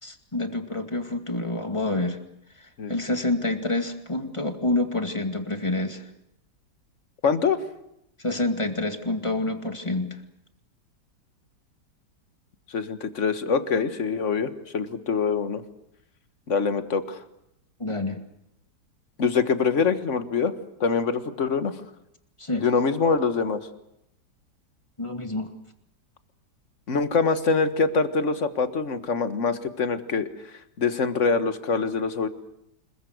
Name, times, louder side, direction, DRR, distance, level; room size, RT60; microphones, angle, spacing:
voice 1, 0.0-2.2 2.6-6.0 8.2-10.2 17.8-18.2 22.4-22.7 25.0-25.5, left 2 dB, 15° left, 5 dB, 2.2 m, -28 dB
voice 2, 7.2-7.6 12.7-15.6 16.5-17.2 19.2-20.5 20.8-21.7 22.6-23.6 26.9-30.3 30.8-32.3, left 5 dB, 45° left, 10 dB, 1.7 m, -24 dB
26.5 x 22.0 x 7.9 m, 0.80 s
omnidirectional pair, 1.9 m